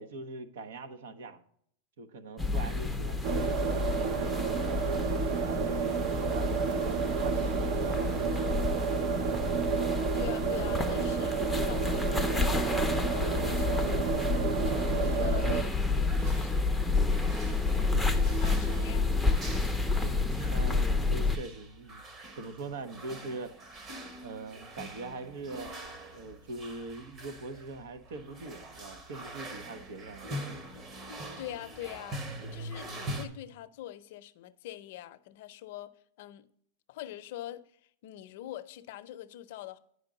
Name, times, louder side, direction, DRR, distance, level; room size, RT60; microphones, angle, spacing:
voice 1, 0.0-1.4 2.0-4.9 5.4-8.9 17.7-18.3 18.6-18.9 20.0-22.0 22.4-23.5 24.2-25.7 26.1-30.7, right 3 dB, 80° right, 0.9 m, -42 dB
sound 1, 2.4-21.4, left 3 dB, ahead, 0.5 m, -30 dB
sound 2, 3.2-15.6, right 7 dB, 55° right, 0.6 m, -31 dB
voice 2, 10.1-14.1 14.5-16.8 18.0-19.5 31.4-32.2 32.5-35.9 36.2-36.5 36.9-37.6 38.0-39.8, left 13 dB, 65° left, 0.5 m, -44 dB
sound 3, 16.0-33.3, right 1 dB, 30° right, 1.1 m, -44 dB
9.7 x 5.1 x 3.9 m
supercardioid pair, 145°, 0 cm